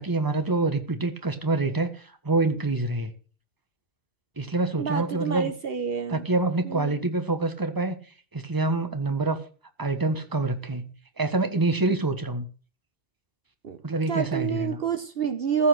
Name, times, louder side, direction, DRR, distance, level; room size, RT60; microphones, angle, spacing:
voice 1, 0.0-3.1 4.4-5.5 6.1-8.0 8.3-9.4 9.8-12.5 13.8-14.8, right 2 dB, 20° right, 8 dB, 1.4 m, -26 dB
voice 2, 4.8-6.2 6.6-6.9 13.6-13.8 14.1-15.7, right 6 dB, 60° right, 10 dB, 1.1 m, -28 dB
15.0 x 5.7 x 7.7 m, 0.39 s
omnidirectional pair, 1.1 m